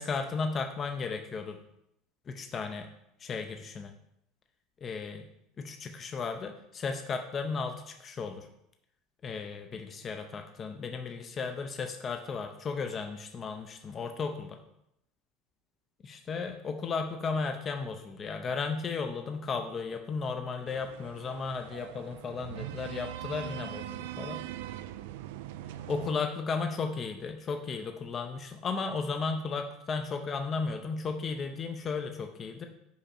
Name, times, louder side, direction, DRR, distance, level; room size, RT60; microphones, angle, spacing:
voice 1, 0.0-1.6 2.3-2.9 3.2-3.9 4.8-5.3 5.6-8.5 9.2-14.6 16.0-24.4 25.9-32.7, left 4 dB, 25° left, 5 dB, 0.5 m, -35 dB
sound 1, 20.7-26.1, right 13 dB, 90° right, 0.3 m, -41 dB
5.6 x 5.0 x 4.3 m, 0.79 s
cardioid pair, 145°, 0 cm